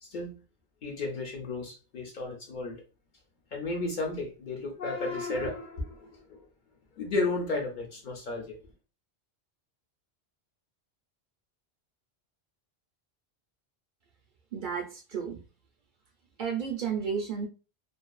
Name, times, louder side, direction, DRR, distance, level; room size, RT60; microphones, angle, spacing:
voice 1, 0.0-0.4 0.8-2.8 3.5-6.5 7.0-8.5, left 2 dB, 55° left, 0 dB, 0.6 m, -33 dB
voice 2, 14.5-15.4 16.4-17.5, right 6 dB, 60° right, 1 dB, 0.6 m, -32 dB
2.5 x 2.2 x 2.3 m, 0.34 s
omnidirectional pair, 1.1 m